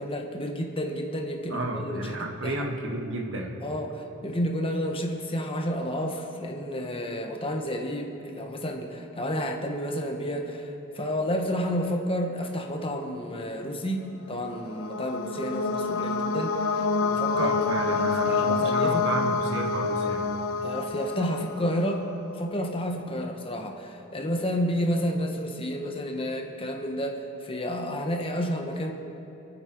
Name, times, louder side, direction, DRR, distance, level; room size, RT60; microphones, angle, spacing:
voice 1, 0.0-2.7 3.6-19.1 20.6-22.1 22.4-28.9, equal, 25° left, 3 dB, 1.4 m, -31 dB
voice 2, 1.5-3.6 17.1-20.3, right 2 dB, 65° right, 2 dB, 1.8 m, -32 dB
sound 1, 14.4-22.1, left 4 dB, 70° left, 0.9 m, -27 dB
27.5 x 9.6 x 4.7 m, 2.9 s
head